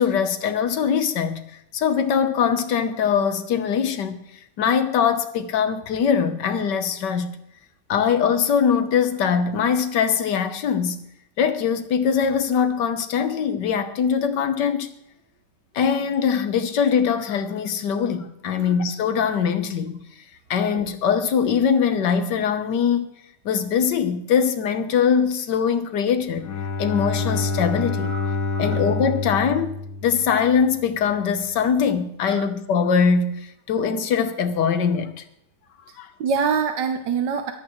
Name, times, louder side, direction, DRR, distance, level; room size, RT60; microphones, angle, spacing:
voice 1, 0.0-1.4 1.7-4.2 4.6-7.4 7.9-11.0 11.4-14.9 15.7-20.0 20.5-23.1 23.4-26.5 26.8-28.1 28.6-35.2 36.0-36.1, left 7 dB, 75° left, 1.6 m, -22 dB
Bowed string instrument, 26.3-30.8, left 3 dB, 60° left, 1.2 m, -27 dB
voice 2, 28.1-28.9 32.2-32.5 36.2-37.5, right 6 dB, 80° right, 1.5 m, -26 dB
24.5 x 8.6 x 3.1 m
omnidirectional pair, 1.9 m